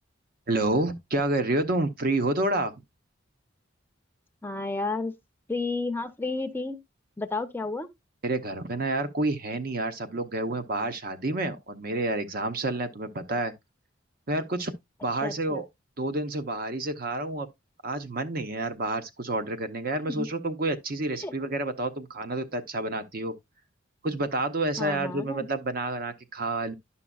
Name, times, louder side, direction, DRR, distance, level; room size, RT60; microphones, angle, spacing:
voice 1, 0.5-2.7 8.2-13.5 14.3-14.7 15.0-15.6 16.0-17.5 17.8-23.3 24.0-26.7, right 2 dB, 50° right, 0.8 m, -29 dB
voice 2, 4.4-5.1 5.5-6.8 7.2-7.9 15.2-15.6 20.1-20.3 21.2-21.3 24.8-25.5, left 3 dB, 10° left, 0.6 m, -31 dB
11.0 x 5.7 x 2.3 m
head